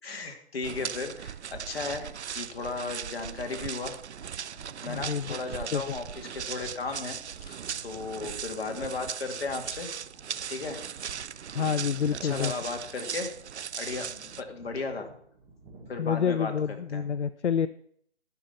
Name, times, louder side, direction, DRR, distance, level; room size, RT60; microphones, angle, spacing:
voice 1, 0.0-4.0 4.8-9.9 10.5-10.8 11.4-11.6 12.2-13.3 13.8-15.1 15.9-16.5 16.9-17.0, left 4 dB, 60° left, 4 dB, 2.3 m, -35 dB
sound 1, 0.6-14.4, right 8 dB, 80° right, 0.5 m, -38 dB
sound 2, 4.1-16.3, right 2 dB, 10° right, 1.9 m, -56 dB
voice 2, 4.9-5.4 5.7-6.0 11.5-12.5 16.0-17.7, left 7 dB, 85° left, 15 dB, 0.6 m, -28 dB
11.0 x 6.0 x 7.0 m, 0.64 s
figure-of-eight pair, 145°, 34 cm